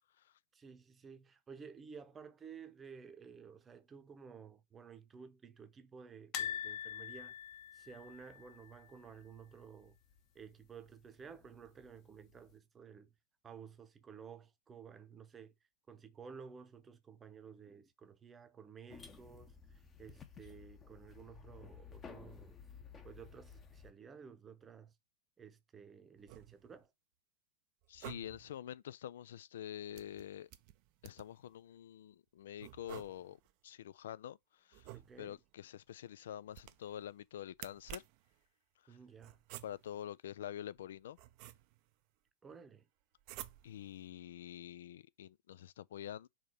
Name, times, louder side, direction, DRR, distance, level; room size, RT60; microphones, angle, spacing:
voice 1, 0.5-7.4 7.7-10.0 10.3-13.1 13.4-15.5 15.9-22.6 23.0-24.9 25.4-26.9 34.9-35.4 38.9-39.4 42.4-42.8, right 6 dB, 20° right, 0.8 m, -54 dB
sound 1, 6.3-9.4 9.6-9.9 10.1-10.2 11.4-12.0 12.5-12.6, left 9 dB, 40° left, 1.1 m, -43 dB
sound 2, 18.9-23.9, left 6 dB, 20° left, 0.9 m, -54 dB
sound 3, 26.2-26.9 27.8-28.6 29.9-31.4 32.6-33.5 34.7-35.5 36.5-37.0 37.5-38.3 39.2-40.0 40.8-41.9 43.2-43.9, right 15 dB, 45° right, 0.5 m, -52 dB
voice 2, 27.9-30.5 31.0-33.4 33.6-34.9 35.2-38.0 38.9-39.0 39.6-41.2 43.6-46.3, left 10 dB, 60° left, 0.3 m, -47 dB
5.0 x 3.7 x 5.7 m
figure-of-eight pair, 90°, 0 cm